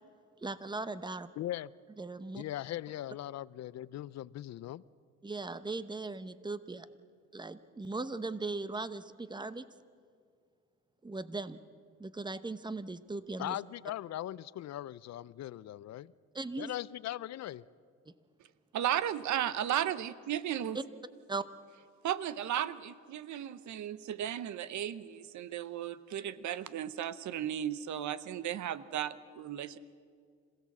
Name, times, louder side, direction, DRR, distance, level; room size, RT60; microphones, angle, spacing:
voice 1, 0.4-1.3 2.0-2.4 5.2-6.9 7.3-9.7 11.0-11.6 12.0-13.6 16.3-16.7 20.7-20.8 21.3-21.4, right 3 dB, 15° right, 0.9 m, -38 dB
voice 2, 1.4-1.7 2.3-4.8 13.4-16.1 16.6-17.6, left 13 dB, 60° left, 0.5 m, -39 dB
voice 3, 18.7-20.8 22.0-29.8, right 11 dB, 70° right, 0.9 m, -35 dB
26.5 x 16.5 x 7.3 m
cardioid pair, 90°, 30 cm